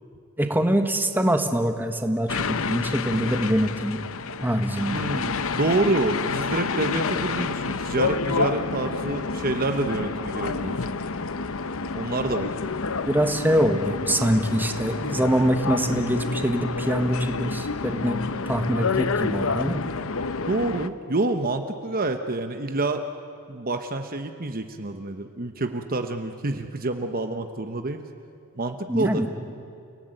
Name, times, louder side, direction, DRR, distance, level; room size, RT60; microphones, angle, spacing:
voice 1, 0.4-4.0 4.4-5.0 13.1-18.2 18.4-19.8 28.9-29.3, equal, 10° right, 6 dB, 1.4 m, -24 dB
sound 1, 2.3-20.9, left 4 dB, 65° left, 0.8 m, -29 dB
voice 2, 4.9-10.8 11.9-12.5 20.5-23.1 23.5-28.0 28.6-29.2, right 2 dB, 40° right, 7 dB, 1.0 m, -27 dB
29.5 x 18.0 x 9.2 m, 2.4 s
head